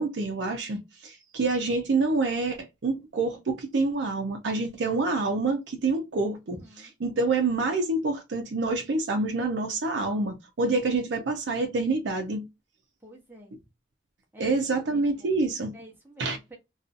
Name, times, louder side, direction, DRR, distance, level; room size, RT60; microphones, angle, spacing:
voice 1, 0.0-12.4 14.4-15.7 16.2-16.4, right 3 dB, 75° right, 0.5 m, -27 dB
voice 2, 6.5-6.9 13.0-13.5 14.3-14.6 14.9-15.4 15.7-16.6, right 1 dB, 10° right, 0.7 m, -48 dB
2.5 x 2.3 x 2.4 m
head